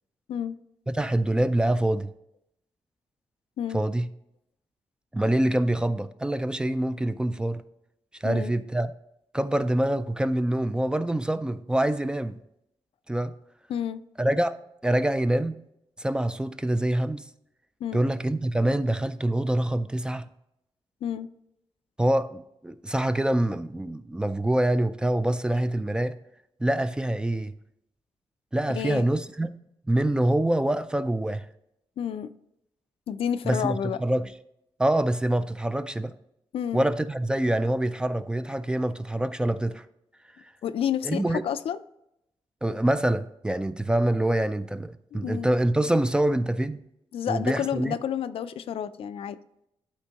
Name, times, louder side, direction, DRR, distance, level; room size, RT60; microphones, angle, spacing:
voice 1, 0.9-2.1 3.7-4.1 5.1-7.6 8.2-8.9 9.3-12.3 13.1-13.3 14.2-14.5 14.8-15.6 16.0-17.3 17.9-20.3 22.0-26.2 26.6-27.5 28.5-29.5 29.9-31.5 33.4-34.3 34.8-36.1 36.7-39.8 41.0-41.4 42.6-46.8 47.3-47.9, right 1 dB, 10° right, 12 dB, 0.3 m, -25 dB
voice 2, 13.7-14.0 17.8-18.0 21.0-21.3 28.7-29.0 32.0-32.3 33.1-34.0 36.5-36.9 40.6-41.8 45.1-45.5 47.1-49.4, left 9 dB, 80° left, 12 dB, 0.4 m, -30 dB
11.5 x 4.5 x 2.9 m, 0.81 s
wide cardioid pair, 125°, 10 cm